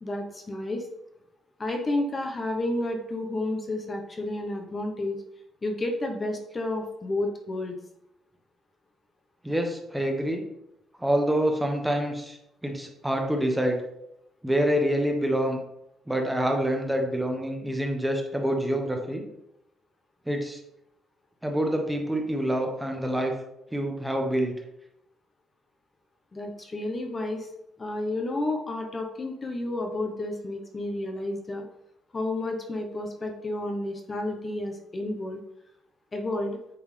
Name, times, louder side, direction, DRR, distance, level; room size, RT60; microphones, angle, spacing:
voice 1, 0.0-0.9 1.6-5.2 5.6-7.7 26.3-27.5 27.8-31.7 32.1-35.4 36.1-36.6, left 2 dB, 30° left, 3 dB, 0.9 m, -31 dB
voice 2, 9.4-10.4 11.0-12.4 12.6-13.8 14.4-15.6 16.1-19.2 20.3-20.6 21.4-23.3 23.7-24.5, right 1 dB, 10° right, 3 dB, 1.1 m, -26 dB
8.5 x 3.5 x 3.3 m, 0.81 s
cardioid pair, 90°, 0 cm